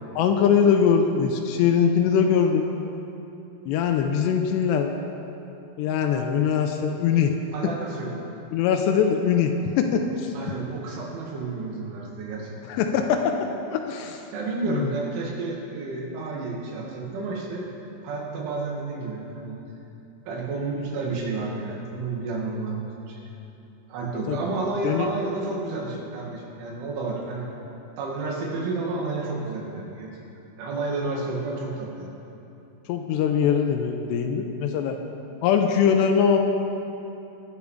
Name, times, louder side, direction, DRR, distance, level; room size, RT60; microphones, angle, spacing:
voice 1, 0.2-2.7 3.7-4.9 5.8-7.3 8.5-10.3 12.7-13.4 13.7-14.2 14.7-14.9 24.3-24.4 24.8-25.1 32.9-35.0 35.4-36.4, left 7 dB, 90° left, 4 dB, 2.5 m, -22 dB
voice 2, 7.5-8.1 10.3-12.6 14.3-17.7 18.0-19.6 20.3-23.2 23.9-27.5 28.0-30.1 30.6-32.1, right 3 dB, 75° right, -3 dB, 4.4 m, -31 dB
22.5 x 8.4 x 4.9 m, 2.9 s
omnidirectional pair, 5.6 m